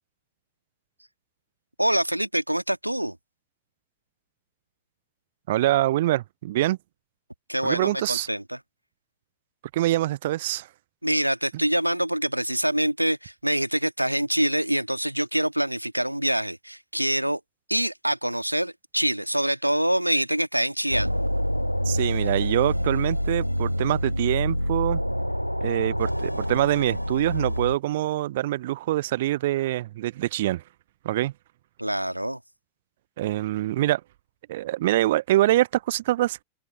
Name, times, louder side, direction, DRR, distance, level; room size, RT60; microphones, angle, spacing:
voice 1, 1.8-3.2 7.5-8.6 11.0-17.4 17.7-21.1 31.8-32.4, right 1 dB, 90° right, 1.7 m, -25 dB
voice 2, 5.5-6.8 7.6-8.3 9.7-10.7 21.9-25.0 25.6-30.6 31.0-31.3 33.2-34.0 34.5-36.4, right 15 dB, 55° right, 0.4 m, -24 dB
sound 1, 20.9-27.8, equal, 90° left, 1.3 m, -27 dB
figure-of-eight pair, 90°, 0 cm